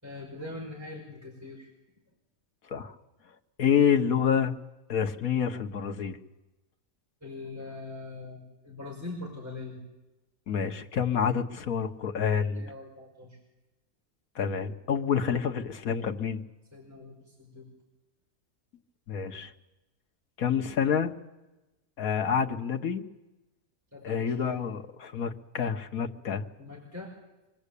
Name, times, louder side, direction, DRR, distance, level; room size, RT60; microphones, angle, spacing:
voice 1, 0.0-1.7 7.2-9.8 12.5-13.4 16.7-17.7 23.9-24.6 26.6-27.1, left 2 dB, 10° right, -2 dB, 5.2 m, -42 dB
voice 2, 3.6-4.6 4.9-6.2 10.5-12.6 14.3-16.4 19.1-19.5 20.4-21.1 22.0-23.0 24.0-26.4, left 7 dB, 80° left, 6 dB, 1.7 m, -28 dB
25.5 x 21.0 x 8.5 m, 1.0 s
omnidirectional pair, 1.5 m